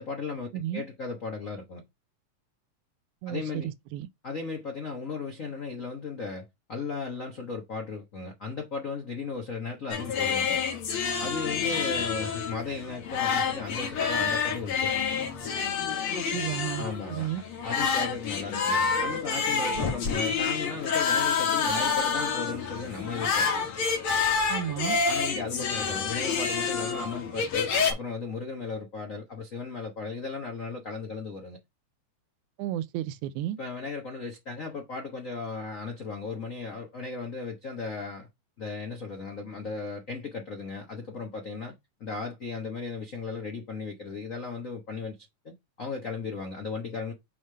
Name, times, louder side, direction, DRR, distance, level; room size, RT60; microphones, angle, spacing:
voice 1, 0.0-1.8 3.3-3.7 4.2-10.6 11.2-15.3 16.7-17.3 17.6-23.7 25.1-31.6 33.6-38.3 38.6-41.7 42.0-45.2 45.4-47.1, left 4 dB, 75° left, 0.7 m, -36 dB
voice 2, 0.5-0.8 3.2-4.1 16.2-17.4 24.5-25.0 32.6-33.6, right 12 dB, 85° right, 2.0 m, -33 dB
sound 1, 9.9-27.9, left 5 dB, 55° left, 2.0 m, -28 dB
5.6 x 3.3 x 5.4 m
omnidirectional pair, 3.4 m